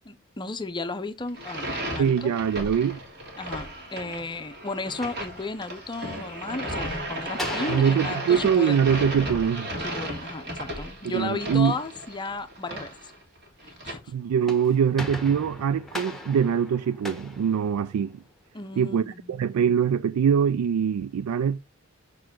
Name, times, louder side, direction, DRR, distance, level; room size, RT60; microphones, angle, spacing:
voice 1, 0.1-2.3 3.4-8.9 9.7-13.1 13.6-14.1 18.5-19.4, left 3 dB, 20° left, 0.6 m, -34 dB
sound 1, 1.3-13.9, right 1 dB, 50° right, 2.3 m, -35 dB
voice 2, 2.0-3.0 7.7-9.7 11.0-11.7 14.1-18.1 18.8-21.6, right 7 dB, 80° right, 0.3 m, -23 dB
sound 2, 5.0-6.0 7.3-9.8 14.2-18.3, left 1 dB, ahead, 1.1 m, -39 dB
6.2 x 4.6 x 5.9 m
head